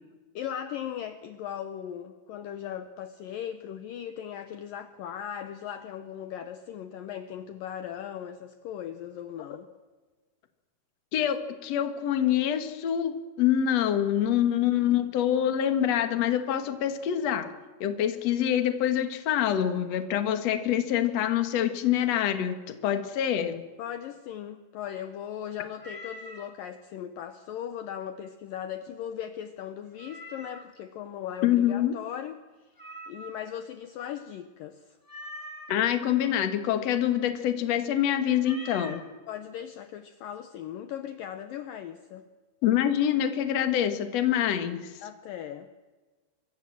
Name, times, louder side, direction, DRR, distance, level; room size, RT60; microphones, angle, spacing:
voice 1, 0.3-9.7 14.7-15.0 23.8-32.3 32.6-32.7 33.1-35.0 39.3-42.3 45.0-45.7, left 9 dB, 80° left, 9 dB, 2.0 m, -38 dB
voice 2, 11.1-17.5 17.8-23.6 31.4-31.9 35.7-39.1 42.6-44.9, left 10 dB, 55° left, 9 dB, 1.9 m, -26 dB
Meow, 25.8-26.5 30.0-30.8 32.8-33.6 35.1-35.8 38.4-39.1, equal, 5° left, 3.1 m, -43 dB
26.0 x 22.5 x 7.7 m, 1.3 s
omnidirectional pair, 5.4 m